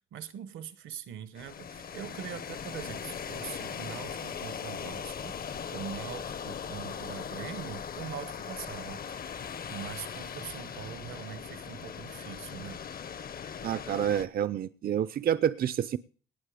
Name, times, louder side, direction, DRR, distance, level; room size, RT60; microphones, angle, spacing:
voice 1, 0.1-5.3 5.7-9.0 9.3-12.8, right 9 dB, 80° right, 14 dB, 1.1 m, -42 dB
sound 1, 1.4-14.3, left 7 dB, 50° left, 0.8 m, -39 dB
voice 2, 13.6-16.0, right 9 dB, 50° right, 15 dB, 0.5 m, -28 dB
18.5 x 7.6 x 5.0 m, 0.42 s
cardioid pair, 90°, 20 cm